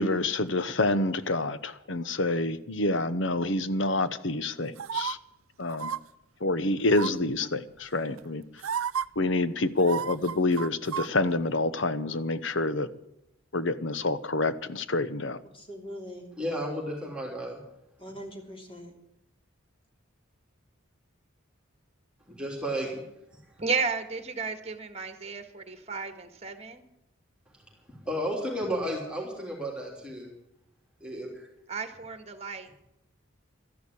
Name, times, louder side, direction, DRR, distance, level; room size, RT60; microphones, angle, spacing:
voice 1, 0.0-5.2 5.6-5.9 6.4-8.4 9.2-12.9 13.5-15.4, left 2 dB, 60° left, 13 dB, 1.0 m, -27 dB
sound 1, 4.8-5.1 5.7-6.0 6.9-7.3 8.2-8.3 8.6-9.0 9.8-11.1 11.4-11.5, right 7 dB, 85° right, 0.6 m, -32 dB
voice 2, 15.5-16.3 18.0-18.9, equal, 25° left, 2 dB, 3.0 m, -42 dB
voice 3, 16.4-17.6 22.3-23.0 23.3-23.4 27.9-30.3 31.0-31.5, equal, 5° right, -2 dB, 3.3 m, -33 dB
voice 4, 23.6-26.8 31.7-32.8, right 4 dB, 30° right, 8 dB, 1.6 m, -33 dB
13.5 x 11.0 x 8.5 m, 0.82 s
head